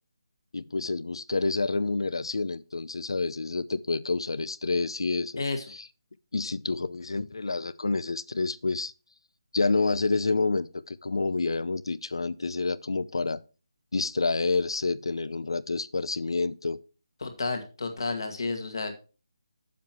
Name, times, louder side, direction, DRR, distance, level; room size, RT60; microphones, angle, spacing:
voice 1, 0.5-5.4 6.3-8.9 9.5-13.4 13.9-16.8, left 3 dB, 80° left, 0.6 m, -28 dB
voice 2, 5.4-5.7 17.2-19.0, left 3 dB, 60° left, 2.1 m, -31 dB
7.5 x 7.4 x 4.5 m
hypercardioid pair, 175°, 3 cm